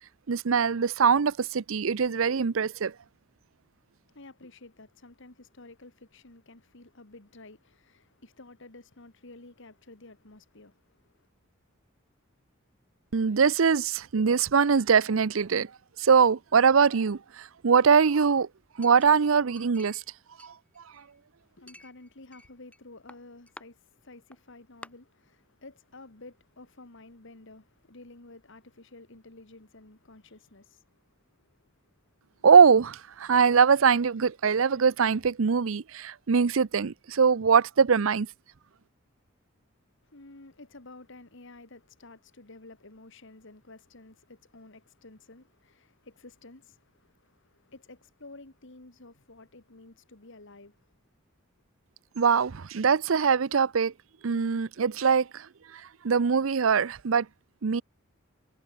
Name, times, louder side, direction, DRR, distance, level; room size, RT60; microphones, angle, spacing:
voice 1, 0.3-2.9 13.1-15.7 16.0-18.5 18.8-20.0 20.4-20.5 32.4-38.3 52.2-53.9 54.2-55.5 56.0-57.3 57.6-57.8, right 6 dB, 70° right, 0.6 m, -22 dB
voice 2, 4.1-11.3 21.4-31.9 32.3-32.5 40.0-51.0, left 2 dB, 65° left, 2.4 m, -51 dB
Chink clink, 18.8-20.1 20.4-21.2 21.7-22.8 23.1-23.7 24.3-24.4 24.8-24.9, left 1 dB, 5° left, 6.7 m, -51 dB
head